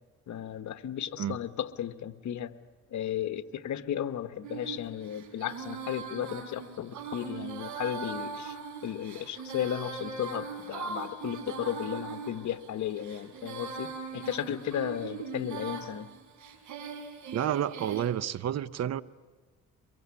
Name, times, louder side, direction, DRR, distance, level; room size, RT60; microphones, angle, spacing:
voice 1, 0.3-2.5 2.9-8.6 8.8-16.1, left 10 dB, 70° left, 1.2 m, -34 dB
Female singing, 4.4-18.1, right 5 dB, 75° right, 5.0 m, -40 dB
voice 2, 17.3-19.0, right 10 dB, 60° right, 0.9 m, -30 dB
24.0 x 22.0 x 8.4 m
cardioid pair, 90°, 30 cm